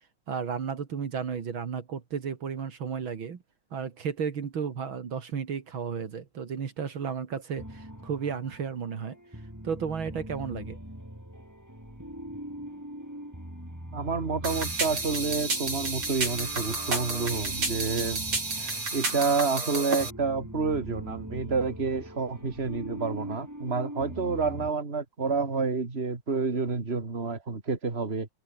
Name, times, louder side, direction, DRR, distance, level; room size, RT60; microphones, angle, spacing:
voice 1, 0.3-3.4 3.7-9.2 9.6-10.8, right 6 dB, 70° right, 2.8 m, -33 dB
sound 1, 7.6-24.7, equal, 10° right, 6.0 m, -42 dB
voice 2, 13.9-18.3 18.6-28.3, right 4 dB, 30° right, 2.9 m, -29 dB
sound 2, 14.4-20.1, right 3 dB, 90° right, 7.3 m, -31 dB
omnidirectional pair, 2.3 m